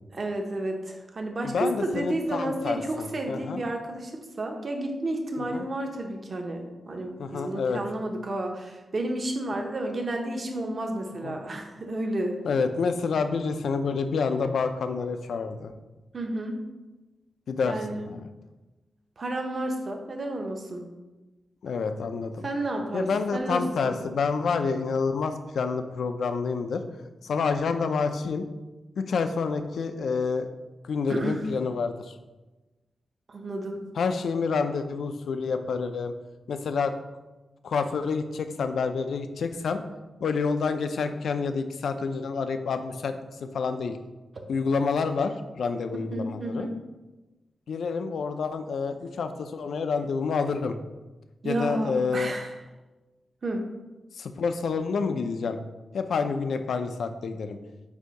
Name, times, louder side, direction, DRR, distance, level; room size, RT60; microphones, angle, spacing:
voice 1, 0.1-12.4 16.1-16.6 17.6-18.1 19.2-20.8 22.4-24.0 31.1-31.4 33.3-33.8 46.1-46.7 51.4-52.5 53.4-53.6, right 1 dB, 40° right, 3 dB, 0.9 m, -31 dB
voice 2, 1.4-3.6 5.4-5.6 7.2-7.8 11.2-11.4 12.4-15.7 17.5-18.2 21.6-22.5 22.9-26.8 27.2-28.5 29.0-30.5 30.8-32.2 33.9-36.1 36.5-36.9 37.6-39.8 40.2-43.1 43.4-43.9 44.5-46.7 47.7-50.8 51.4-52.3 54.1-55.6 55.9-57.6, left 5 dB, 80° left, 8 dB, 0.5 m, -28 dB
8.1 x 2.8 x 5.2 m, 1.1 s
wide cardioid pair, 150°, 0 cm